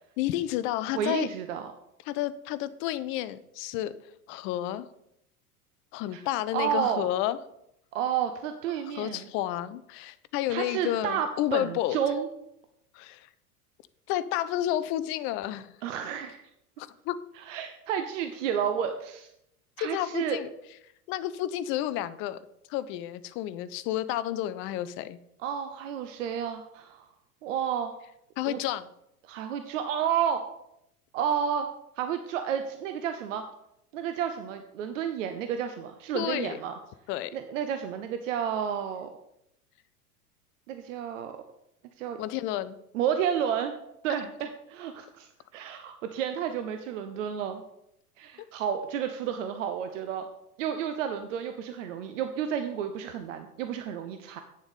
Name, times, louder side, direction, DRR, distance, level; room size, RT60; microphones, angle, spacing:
voice 1, 0.2-1.3 2.1-3.9 4.3-4.9 5.9-7.4 8.9-12.0 12.9-13.3 14.1-15.8 16.8-17.2 19.8-20.5 21.1-25.2 28.4-28.9 36.1-36.6 37.1-37.4 42.2-42.8, left 13 dB, 30° left, 14 dB, 0.5 m, -31 dB
voice 2, 0.9-1.7 6.1-6.2 6.5-7.0 7.9-9.3 10.5-12.3 15.8-16.4 17.4-19.3 19.8-20.4 25.4-27.1 27.4-28.0 28.5-28.6 29.3-30.5 31.1-31.7 32.0-33.4 33.9-36.7 37.3-39.1 40.7-41.4 42.0-42.2 42.9-43.8 44.0-47.6 48.2-50.3 50.6-54.4, right 8 dB, 55° right, 8 dB, 0.9 m, -31 dB
8.9 x 7.0 x 5.2 m, 0.80 s
figure-of-eight pair, 85°, 46 cm